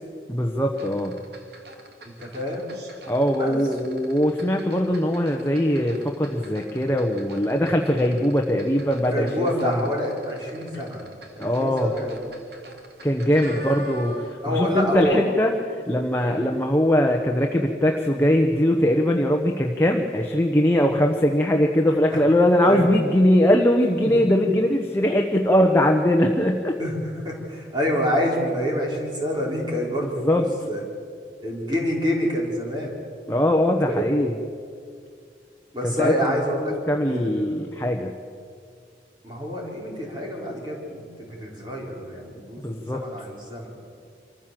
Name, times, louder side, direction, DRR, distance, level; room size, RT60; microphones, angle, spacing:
voice 1, 0.3-1.2 3.1-9.8 10.7-10.8 11.4-11.9 13.0-26.8 30.0-30.5 33.3-34.3 35.8-36.4 36.7-38.1 42.6-43.0, equal, 15° left, 2 dB, 1.1 m, -21 dB
sound 1, 0.7-14.5 14.8-15.0, right 2 dB, 65° right, 2.5 m, -44 dB
voice 2, 2.0-2.6 3.4-3.6 9.1-11.0 11.4-12.2 14.4-15.2 16.3-16.5 22.1-22.2 22.6-22.9 24.0-24.2 26.8-30.8 31.4-32.9 33.8-34.1 35.7-36.7 37.1-37.3 39.2-43.7, equal, 25° right, -2 dB, 4.4 m, -27 dB
25.5 x 15.0 x 7.6 m, 2.2 s
head